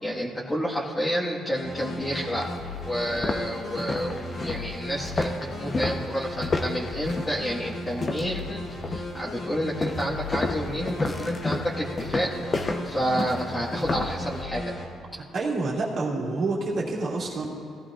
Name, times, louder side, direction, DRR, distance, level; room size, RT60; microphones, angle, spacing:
voice 1, 0.0-2.5 2.8-14.7, equal, 20° left, -5 dB, 1.6 m, -30 dB
sound 1, 1.5-14.9, left 1 dB, 65° left, 2.7 m, -36 dB
sound 2, 1.8-1.9 2.4-2.5 3.0-8.5 8.8-9.2 9.8-14.2, left 3 dB, 35° left, 0.9 m, -31 dB
voice 2, 15.3-17.5, right 3 dB, 55° right, -3 dB, 2.3 m, -28 dB
17.0 x 12.5 x 2.5 m, 2.5 s
cardioid pair, 80°, 0 cm